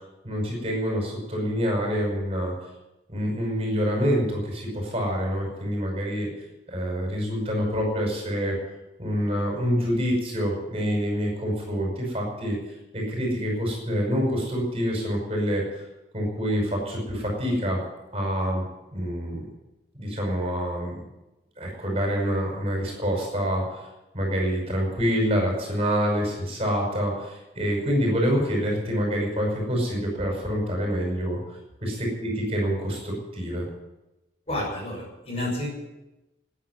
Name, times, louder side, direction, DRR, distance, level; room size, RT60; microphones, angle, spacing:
voice 1, 0.2-2.5 3.1-6.3 6.7-8.6 9.0-12.6 12.9-15.6 16.1-17.8 18.1-18.6 18.9-19.4 20.0-20.9 21.6-23.9 24.1-31.4 31.8-33.7, equal, 35° right, 0 dB, 5.5 m, -26 dB
voice 2, 34.5-35.7, left 1 dB, 35° left, -2 dB, 6.1 m, -30 dB
15.0 x 9.6 x 9.8 m, 0.99 s
head